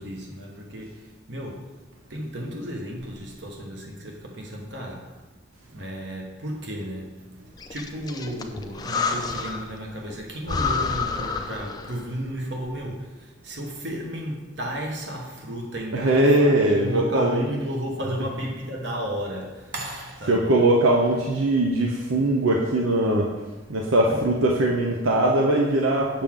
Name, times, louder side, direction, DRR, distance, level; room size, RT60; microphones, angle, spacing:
voice 1, 0.0-1.8 2.1-5.2 5.7-7.3 7.7-20.5 24.1-24.2, equal, 60° right, 0 dB, 1.3 m, -33 dB
Breathing, 7.6-9.8 10.1-10.2 10.5-12.1, left 4 dB, 20° left, 0.4 m, -29 dB
voice 2, 15.9-17.4 20.3-23.3 23.7-26.2, right 1 dB, 85° right, 0 dB, 0.7 m, -21 dB
6.8 x 5.9 x 3.7 m, 1.2 s
head